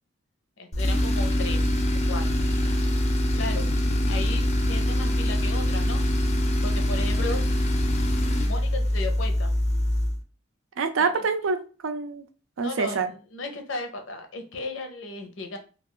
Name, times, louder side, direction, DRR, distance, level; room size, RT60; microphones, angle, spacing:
voice 1, 0.6-1.7 2.1-2.2 3.3-3.7 4.1-6.0 6.6-7.4 8.4-9.5 11.0-11.2 12.6-13.0 13.3-15.6, left 3 dB, 75° left, 5 dB, 0.7 m, -35 dB
Tools, 0.7-10.2, left 1 dB, 35° left, 0.4 m, -24 dB
voice 2, 10.8-12.2 12.6-13.1, right 4 dB, 80° right, 8 dB, 0.4 m, -26 dB
2.4 x 2.3 x 3.6 m, 0.37 s
head